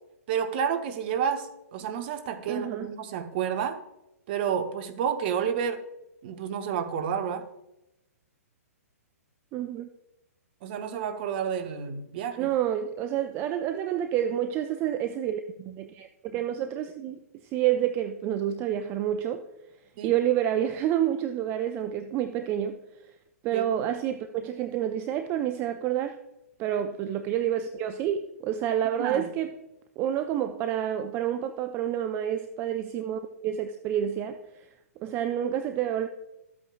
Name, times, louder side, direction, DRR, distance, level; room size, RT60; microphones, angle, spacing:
voice 1, 0.3-3.8 4.3-5.8 6.2-7.4 10.6-12.5 20.0-20.1 23.5-23.6 29.0-29.3, right 7 dB, 40° right, 0.9 m, -30 dB
voice 2, 2.5-2.9 9.5-9.9 12.4-19.4 20.0-23.1 23.4-26.2 26.6-29.6 30.0-34.7 35.0-36.1, right 10 dB, 25° right, 0.4 m, -29 dB
13.0 x 8.4 x 2.3 m
figure-of-eight pair, 115°, 8 cm